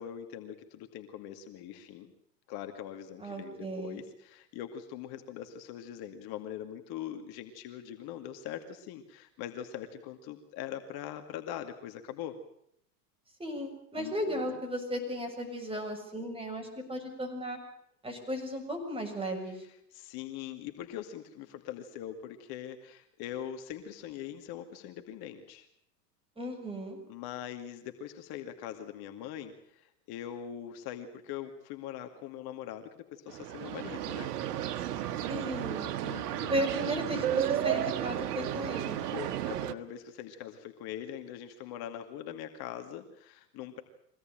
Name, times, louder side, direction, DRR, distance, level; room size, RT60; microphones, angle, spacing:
voice 1, 0.0-2.1 2.5-12.4 14.0-14.6 19.6-25.7 27.1-34.3 36.0-36.6 39.0-43.8, left 10 dB, 50° left, 6 dB, 2.5 m, -42 dB
voice 2, 3.2-4.0 13.4-17.6 18.0-19.6 26.4-27.0 35.3-35.9 36.5-39.0, equal, 10° right, 2 dB, 7.0 m, -35 dB
sound 1, 33.3-39.7, right 11 dB, 70° right, 1.6 m, -33 dB
24.0 x 17.5 x 9.0 m, 0.71 s
hypercardioid pair, 110°, 49 cm